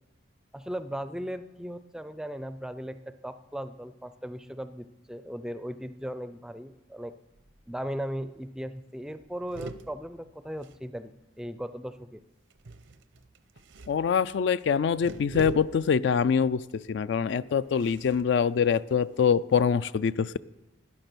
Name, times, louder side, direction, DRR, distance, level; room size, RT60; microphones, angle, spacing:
voice 1, 0.5-7.1 7.7-12.2, equal, 5° right, 11 dB, 0.4 m, -37 dB
sound 1, 7.4-7.8 8.1-8.2 8.5-8.7 9.1-11.4 12.5-19.4, right 3 dB, 80° right, 0.7 m, -46 dB
voice 2, 13.9-20.4, left 6 dB, 65° left, 16 dB, 0.3 m, -24 dB
12.0 x 9.9 x 6.1 m, 1.0 s
head